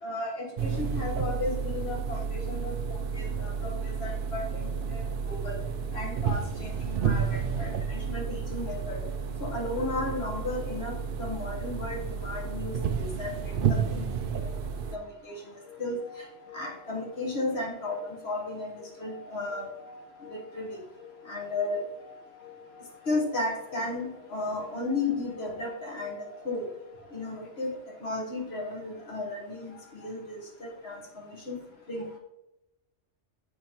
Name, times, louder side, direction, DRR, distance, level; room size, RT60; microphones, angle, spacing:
voice 1, 0.0-5.6 5.9-9.0 9.4-14.0 14.9-15.4 15.8-16.0 16.5-19.7 20.3-20.8 21.2-21.8 23.1-26.7 27.1-31.6 31.9-32.0, left 2 dB, 55° left, -1 dB, 1.6 m, -34 dB
sound 1, 0.6-15.0, right 6 dB, 60° right, 0.6 m, -31 dB
sound 2, 15.6-28.4, left 4 dB, 85° left, 1.5 m, -51 dB
7.8 x 5.2 x 2.9 m, 0.92 s
omnidirectional pair, 1.3 m